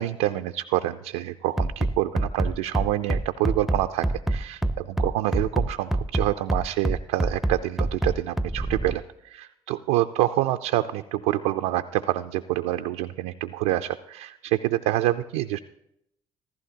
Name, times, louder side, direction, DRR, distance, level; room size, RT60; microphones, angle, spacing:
voice 1, 0.0-15.6, right 15 dB, 75° right, 7 dB, 0.4 m, -27 dB
Bass drum, 1.6-9.0, right 1 dB, ahead, 0.6 m, -25 dB
14.5 x 14.5 x 2.8 m, 0.79 s
hypercardioid pair, 55°, 12 cm